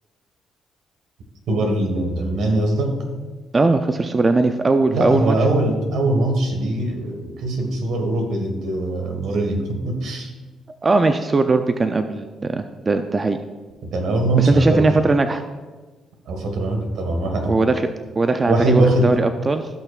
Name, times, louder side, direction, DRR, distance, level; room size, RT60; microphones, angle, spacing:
voice 1, 1.5-3.0 4.9-10.3 13.9-14.9 16.3-17.6 18.5-19.2, right 2 dB, 80° right, 3 dB, 1.6 m, -21 dB
voice 2, 3.5-5.4 10.8-13.4 14.4-15.4 17.5-17.8 18.2-19.7, right 3 dB, 30° right, 8 dB, 0.4 m, -19 dB
15.5 x 5.7 x 2.4 m, 1.3 s
cardioid pair, 90°, 0 cm